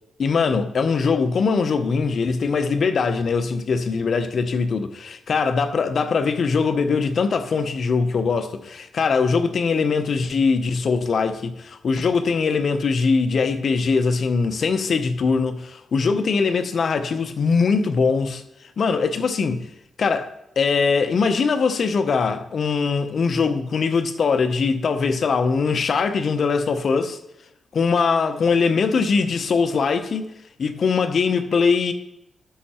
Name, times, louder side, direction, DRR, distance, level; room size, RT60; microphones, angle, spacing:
voice 1, 0.2-18.4 18.8-19.7 20.0-20.3 20.6-27.2 27.7-30.3 30.6-31.9, left 5 dB, 65° left, 0.8 m, -21 dB
12.5 x 5.7 x 4.3 m
cardioid pair, 65°, 0 cm